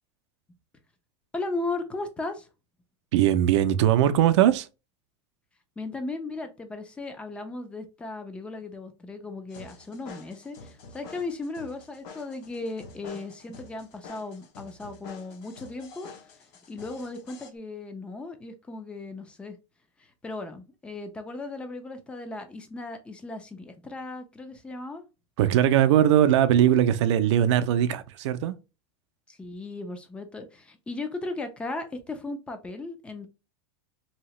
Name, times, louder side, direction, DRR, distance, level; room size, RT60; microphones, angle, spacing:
voice 1, 1.3-2.5 5.8-16.1 16.7-19.6 20.2-25.0 29.3-33.3, left 2 dB, 5° left, 0.4 m, -36 dB
voice 2, 3.1-4.7 25.4-28.6, right 11 dB, 70° right, 0.4 m, -20 dB
sound 1, 9.5-17.5, left 4 dB, 45° left, 0.7 m, -48 dB
2.8 x 2.8 x 3.0 m
supercardioid pair, 160°, 15 cm